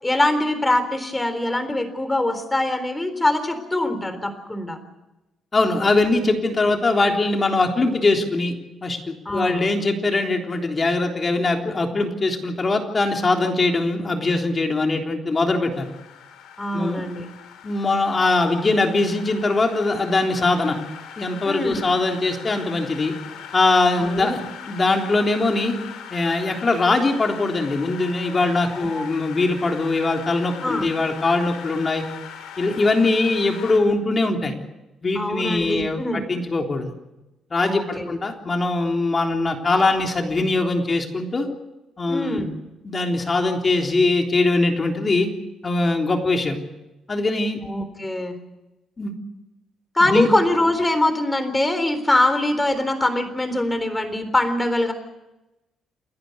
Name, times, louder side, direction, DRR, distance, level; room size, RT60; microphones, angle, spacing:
voice 1, 0.0-4.8 9.3-9.7 16.6-17.3 21.4-21.9 24.0-24.4 28.7-29.1 30.6-30.9 35.2-36.2 37.6-38.2 42.1-42.5 47.7-48.4 49.9-54.9, left 1 dB, 15° left, 10 dB, 3.8 m, -23 dB
voice 2, 5.5-8.5 8.8-15.9 16.7-17.0 17.6-20.8 21.2-23.1 23.5-25.8 26.1-32.0 32.6-34.5 35.0-36.9 37.5-41.5 42.0-42.5 42.8-45.3 45.6-46.6 47.1-47.6 49.0-49.1 50.0-50.3, left 3 dB, 30° left, 3 dB, 3.6 m, -21 dB
sound 1, 15.7-33.8, left 8 dB, 85° left, 3.1 m, -40 dB
29.0 x 11.0 x 9.6 m, 1.0 s
cardioid pair, 90°, 0 cm